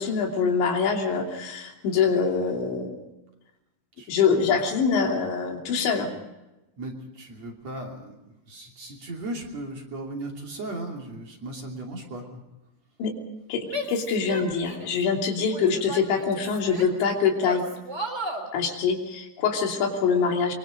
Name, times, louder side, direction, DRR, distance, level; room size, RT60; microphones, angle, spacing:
voice 1, 0.0-3.0 4.1-6.1 13.0-13.1 13.5-17.6 18.5-20.5, left 5 dB, 85° left, 1 dB, 5.2 m, -24 dB
voice 2, 6.8-12.4, right 2 dB, 40° right, 0 dB, 3.6 m, -37 dB
Female speech woman speaking / Yell, 13.7-15.0 15.5-17.0 17.4-18.5, right 1 dB, 15° right, 3.4 m, -34 dB
24.0 x 24.0 x 5.2 m, 0.97 s
omnidirectional pair, 5.1 m